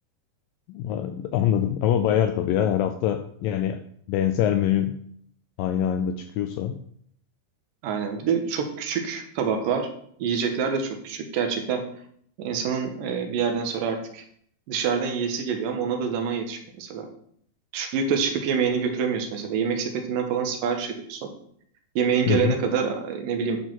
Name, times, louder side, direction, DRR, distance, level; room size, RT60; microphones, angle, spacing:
voice 1, 0.7-5.0 5.6-6.8 22.3-22.6, left 10 dB, 85° left, 8 dB, 2.0 m, -24 dB
voice 2, 7.8-9.9 10.2-11.8 12.4-14.2 14.7-17.1 17.7-21.3 22.0-23.6, right 6 dB, 65° right, 4 dB, 2.6 m, -26 dB
10.5 x 4.6 x 6.1 m, 0.65 s
omnidirectional pair, 4.6 m